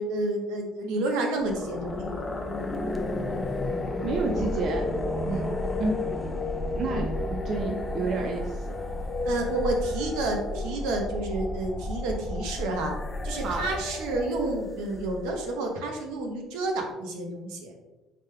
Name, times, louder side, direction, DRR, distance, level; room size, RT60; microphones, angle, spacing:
voice 1, 0.0-2.3 5.2-5.5 9.2-12.9 13.2-17.7, right 2 dB, 85° right, 2 dB, 0.8 m, -30 dB
sound 1, 1.4-15.5, left 2 dB, 20° left, 0.4 m, -32 dB
voice 2, 4.0-5.0 5.8-6.4 6.7-8.8 13.4-13.7, right 3 dB, 50° right, 3 dB, 0.4 m, -30 dB
4.9 x 3.4 x 2.2 m, 1.1 s
cardioid pair, 105°, 0 cm